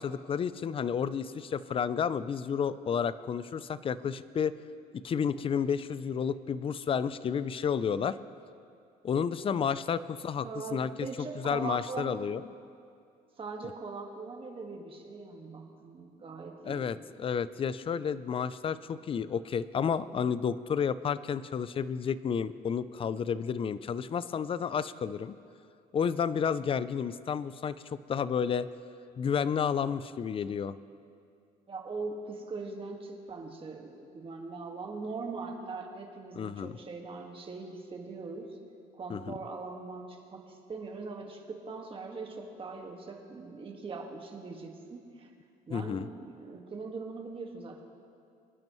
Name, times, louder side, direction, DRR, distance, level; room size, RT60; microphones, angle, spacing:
voice 1, 0.0-4.5 4.9-8.2 9.0-10.9 11.2-12.4 16.6-25.3 25.9-28.7 29.2-30.8 36.4-36.8 39.1-39.2 45.7-46.1, left 7 dB, 35° left, 16 dB, 0.4 m, -31 dB
voice 2, 10.4-12.2 13.4-17.0 31.7-38.6 38.9-45.3 45.7-47.8, right 4 dB, 30° right, 2 dB, 1.8 m, -41 dB
25.0 x 10.5 x 3.1 m, 2.4 s
cardioid pair, 110°, 17 cm